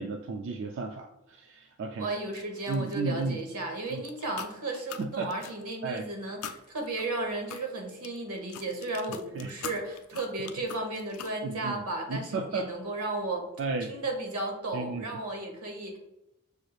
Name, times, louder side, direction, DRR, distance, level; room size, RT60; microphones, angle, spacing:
voice 1, 0.0-2.1 2.7-3.4 3.9-4.0 5.0-5.3 5.8-6.1 9.3-9.5 11.4-12.7 13.6-13.9 14.7-15.1, right 3 dB, 55° right, 3 dB, 0.3 m, -33 dB
voice 2, 2.0-13.5 13.9-16.0, right 2 dB, 85° right, 2 dB, 1.1 m, -34 dB
sound 1, 2.3-3.6 3.9-6.0 6.4-11.4, left 8 dB, 85° left, 0.4 m, -43 dB
6.1 x 3.1 x 2.3 m, 0.92 s
head